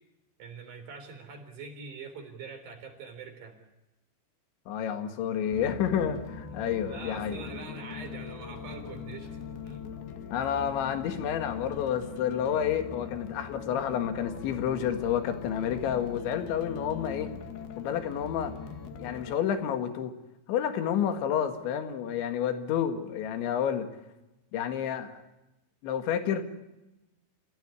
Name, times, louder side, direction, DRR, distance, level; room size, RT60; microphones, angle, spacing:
voice 1, 0.4-3.6 6.6-9.8, right 4 dB, 55° right, 6 dB, 5.4 m, -44 dB
voice 2, 4.7-7.4 10.3-17.3 17.8-18.5 19.0-20.1 20.5-23.9 24.5-25.2 25.8-26.4, left 9 dB, 85° left, 7 dB, 4.2 m, -30 dB
sound 1, 5.5-19.4, left 6 dB, 65° left, 3.6 m, -41 dB
28.5 x 16.5 x 9.9 m, 0.97 s
omnidirectional pair, 5.2 m